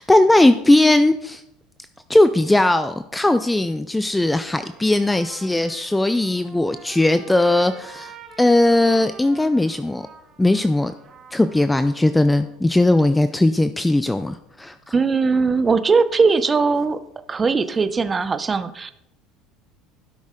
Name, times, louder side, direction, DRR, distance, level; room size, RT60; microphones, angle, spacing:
voice 1, 0.0-1.4 2.1-10.1 10.4-10.9 11.3-14.8, left 1 dB, 10° left, 11 dB, 0.4 m, -18 dB
Trumpet, 4.5-12.5, right 5 dB, 40° right, 1.9 m, -46 dB
voice 2, 14.9-17.0 17.3-18.9, right 4 dB, 25° right, 12 dB, 0.7 m, -19 dB
12.0 x 6.2 x 3.8 m, 0.78 s
supercardioid pair, 90°, 0 cm